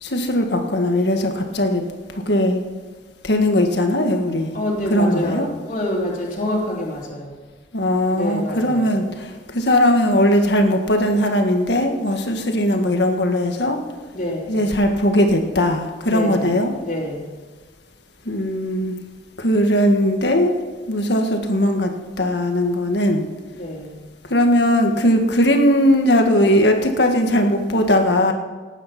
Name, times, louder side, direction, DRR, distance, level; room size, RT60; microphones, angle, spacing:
voice 1, 0.0-1.8 2.1-2.6 3.2-4.5 4.9-5.5 7.7-13.8 14.5-16.7 18.2-18.9 19.4-20.6 20.9-21.9 22.2-23.3 24.3-28.3, left 1 dB, 65° left, 4 dB, 1.7 m, -19 dB
voice 2, 4.5-7.4 8.1-8.9 14.1-14.6 16.0-17.3 23.5-24.0, left 1 dB, 40° left, -4 dB, 3.5 m, -27 dB
18.5 x 9.2 x 6.0 m, 1.4 s
head